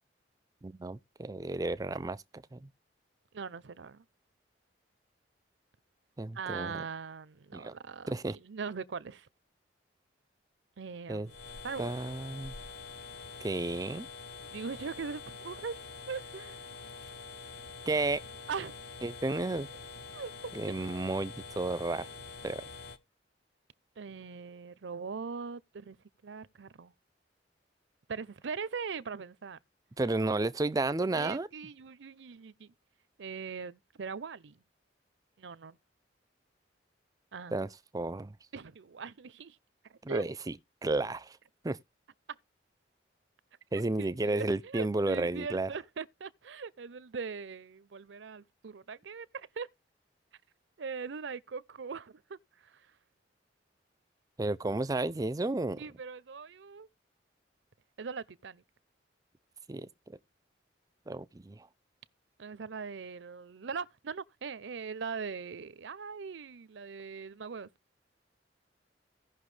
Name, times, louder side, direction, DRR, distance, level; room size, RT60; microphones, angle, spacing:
voice 1, 0.6-2.2 2.5-2.7 6.2-6.8 7.5-7.7 8.1-8.4 11.1-11.3 11.8-12.5 13.4-14.1 17.9-18.2 19.0-19.7 20.5-22.1 22.4-22.6 30.0-31.5 37.5-38.4 40.0-40.5 40.8-41.4 41.6-41.8 43.7-45.7 54.4-55.8 59.7-60.2 61.1-61.7, right 2 dB, 20° right, 0.4 m, -32 dB
voice 2, 3.3-4.0 6.3-9.3 10.8-11.4 11.6-11.9 14.5-15.8 16.1-16.6 18.5-18.7 20.1-20.5 24.0-26.0 26.2-26.9 28.1-29.6 31.2-32.7 33.2-34.6 35.4-35.8 37.3-37.5 38.5-39.6 39.9-40.2 42.3-42.4 44.0-49.7 50.8-52.9 55.8-56.9 58.0-58.6 62.4-67.7, right 5 dB, 75° right, 0.6 m, -41 dB
sound 1, 11.3-23.0, left 4 dB, 60° left, 0.9 m, -46 dB
16.5 x 5.7 x 3.3 m
head